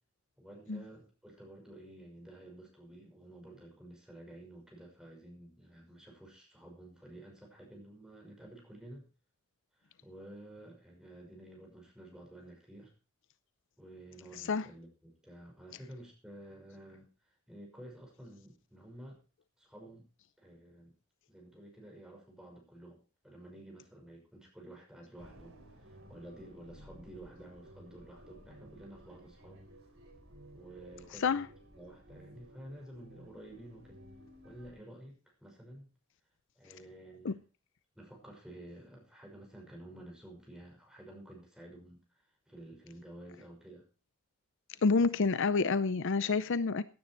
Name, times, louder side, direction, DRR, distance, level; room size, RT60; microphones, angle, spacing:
voice 1, 0.4-9.1 9.7-12.9 13.8-17.1 17.5-19.2 19.6-20.1 20.4-20.9 21.3-29.6 30.5-34.0 34.4-35.9 36.6-37.4 38.0-43.8, right 1 dB, 5° right, 5.9 m, -52 dB
sound 1, 25.2-34.7, right 1 dB, 65° right, 4.4 m, -55 dB
voice 2, 44.8-46.8, left 4 dB, 60° left, 0.6 m, -28 dB
17.0 x 9.5 x 4.5 m
head